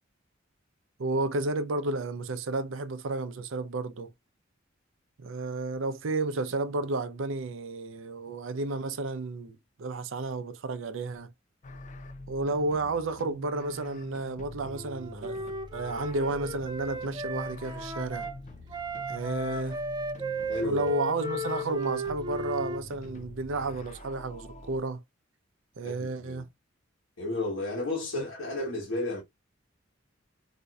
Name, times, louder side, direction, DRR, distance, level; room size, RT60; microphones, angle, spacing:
voice 1, 1.0-4.1 5.2-11.3 12.3-15.4 15.7-18.3 19.1-19.8 20.6-25.0 25.8-26.5 28.1-28.2, right 2 dB, 80° right, 0.5 m, -32 dB
sound 1, 11.6-24.8, left 2 dB, 40° left, 0.4 m, -45 dB
Wind instrument woodwind instrument, 14.7-18.3 18.7-22.8, right 1 dB, 20° right, 0.4 m, -35 dB
voice 2, 20.5-20.8 25.8-26.4 27.2-29.2, left 2 dB, 85° left, 1.2 m, -32 dB
4.2 x 2.6 x 2.3 m
head